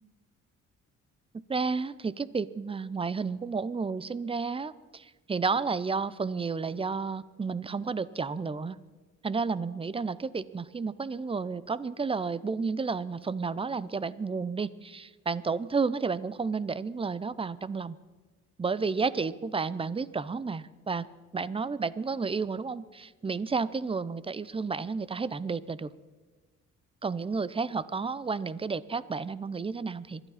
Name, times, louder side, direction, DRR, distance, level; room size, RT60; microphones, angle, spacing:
voice 1, 1.3-8.8 9.2-18.0 18.6-21.1 21.3-25.9 27.0-30.2, right 4 dB, 20° right, 17 dB, 0.6 m, -31 dB
26.0 x 12.0 x 4.2 m, 1.3 s
cardioid pair, 90°, 30 cm